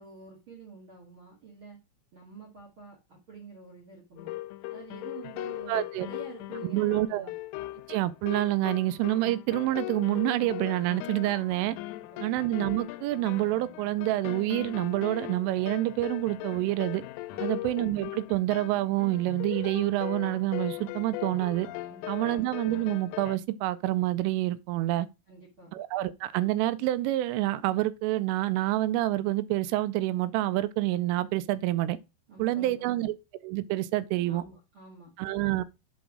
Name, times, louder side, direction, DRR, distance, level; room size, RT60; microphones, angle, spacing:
voice 1, 0.0-1.8 2.1-4.4 4.7-7.3 11.9-12.3 17.3-17.5 21.9-22.3 25.3-25.7 32.3-33.0 34.2-35.1, right 4 dB, 55° right, 1.4 m, -48 dB
sound 1, 4.2-23.4, left 17 dB, 85° left, 3.2 m, -39 dB
voice 2, 5.7-6.1 6.6-7.3 7.9-11.8 12.2-17.0 17.4-21.7 22.1-25.1 25.7-32.0 32.4-33.1 33.4-34.4 35.2-35.6, right 16 dB, 85° right, 3.1 m, -27 dB
8.1 x 3.5 x 6.1 m
omnidirectional pair, 5.7 m